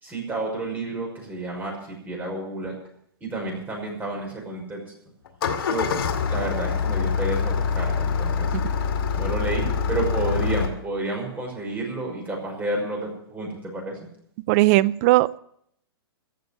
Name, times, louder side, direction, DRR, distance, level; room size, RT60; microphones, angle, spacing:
voice 1, 0.0-2.7 3.2-4.8 5.7-5.9 6.3-8.5 9.1-14.0, right 2 dB, 15° right, -1 dB, 5.9 m, -30 dB
Engine starting, 5.3-10.7, left 6 dB, 70° left, 2.2 m, -25 dB
voice 2, 14.5-15.4, right 18 dB, 40° right, 21 dB, 0.5 m, -18 dB
15.0 x 7.1 x 9.8 m, 0.69 s
hypercardioid pair, 120°, 13 cm